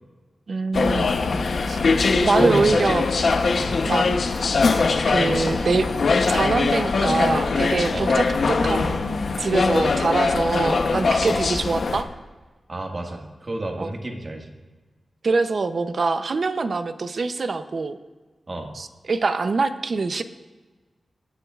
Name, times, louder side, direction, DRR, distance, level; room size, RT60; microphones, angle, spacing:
voice 1, 0.5-1.1 1.7-1.8 2.2-3.4 3.8-4.1 5.1-5.9 6.3-9.1 9.4-12.1 13.8-13.9 15.2-18.0 18.7-20.2, right 4 dB, 60° right, 10 dB, 0.6 m, -24 dB
sound 1, 0.7-12.0, left 4 dB, 75° left, 0.8 m, -22 dB
voice 2, 2.4-2.9 3.5-3.8 7.9-8.1 11.2-11.4 12.7-14.5 18.5-18.7, right 1 dB, 40° right, 1 dB, 1.7 m, -29 dB
18.0 x 10.0 x 2.4 m, 1.3 s
wide cardioid pair, 80°, 0 cm